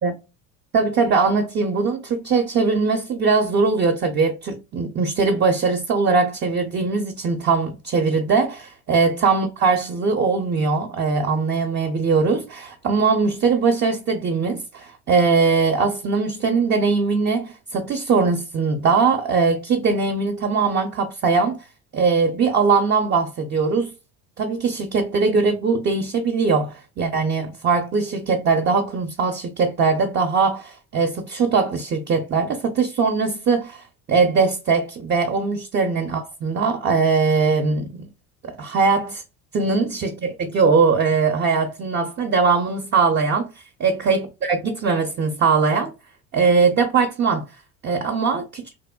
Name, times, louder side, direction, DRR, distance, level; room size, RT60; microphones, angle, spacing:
voice 1, 0.7-21.7 21.9-23.9 24.4-38.1 38.4-39.2 39.5-45.9 46.3-47.4 47.8-48.6, right 4 dB, 30° right, 0.4 m, -21 dB
3.0 x 2.0 x 2.2 m
hypercardioid pair, 80°, 40 cm